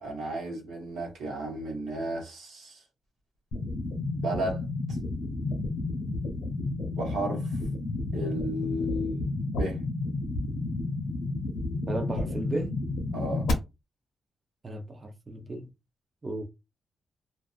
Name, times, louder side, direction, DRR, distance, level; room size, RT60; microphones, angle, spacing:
voice 1, 0.0-2.8 4.1-4.6 6.9-7.5 8.1-9.3 9.6-9.8 13.1-13.5, right 1 dB, 85° right, 1.0 m, -33 dB
sound 1, 3.5-13.5, left 2 dB, 85° left, 0.7 m, -31 dB
voice 2, 11.8-12.7 14.6-15.7 16.2-16.4, right 1 dB, 35° right, 0.6 m, -34 dB
2.4 x 2.3 x 2.4 m
cardioid pair, 65°, 0 cm